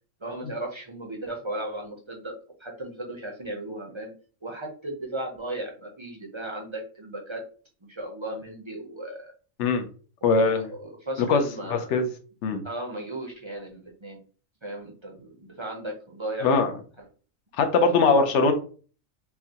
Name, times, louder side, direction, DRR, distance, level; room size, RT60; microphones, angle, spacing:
voice 1, 0.2-2.3 2.6-4.1 4.4-7.4 7.8-9.3 10.2-12.0 12.6-14.2 14.6-16.5 17.0-17.1 17.9-18.2, right 1 dB, 30° right, 0 dB, 0.6 m, -36 dB
voice 2, 10.2-10.7 11.3-11.4 11.7-12.1 12.4-12.6 16.4-16.7 17.6-18.5, left 4 dB, 60° left, 7 dB, 1.0 m, -21 dB
5.7 x 2.3 x 2.8 m, 0.39 s
omnidirectional pair, 1.4 m